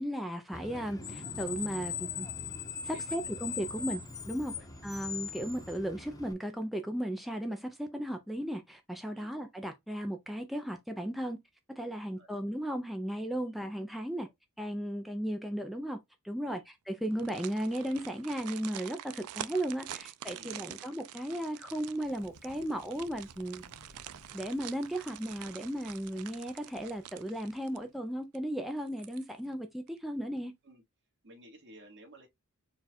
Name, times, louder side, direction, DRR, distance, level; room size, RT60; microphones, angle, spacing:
voice 1, 0.0-2.3 2.8-4.0 4.3-4.5 4.8-11.4 11.7-14.3 14.6-23.6 24.3-30.5, right 1 dB, ahead, 0.4 m, -35 dB
Screech, 0.5-6.3, left 6 dB, 15° left, 0.8 m, -40 dB
sound 1, 17.0-28.0 28.3-28.4 28.9-29.5 29.9-30.0, right 11 dB, 80° right, 0.4 m, -47 dB
Thunder, 22.0-27.9, left 2 dB, 70° left, 1.2 m, -61 dB
voice 2, 31.2-32.3, right 1 dB, 55° right, 1.7 m, -55 dB
4.5 x 2.3 x 4.2 m
head